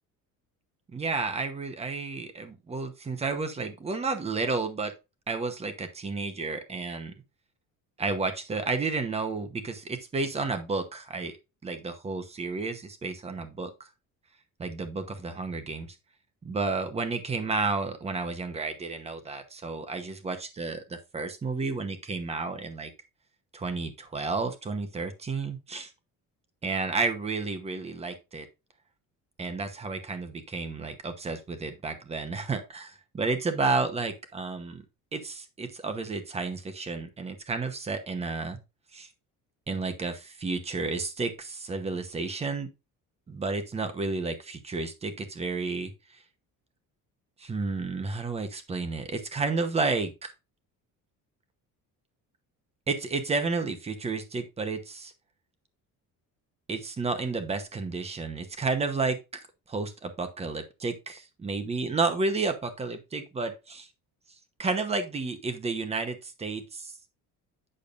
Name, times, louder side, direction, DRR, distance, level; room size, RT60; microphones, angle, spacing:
voice 1, 0.9-4.9 5.3-7.1 8.0-11.4 11.6-13.7 14.6-15.9 16.4-22.9 23.5-25.9 26.6-28.5 29.4-34.8 35.1-38.6 38.9-39.1 39.7-42.7 43.3-45.9 47.4-50.3 52.9-55.1 56.7-63.9 64.6-67.0, right 3 dB, 20° right, 8 dB, 1.0 m, -31 dB
8.8 x 6.7 x 2.5 m, 0.26 s
cardioid pair, 175°, 34 cm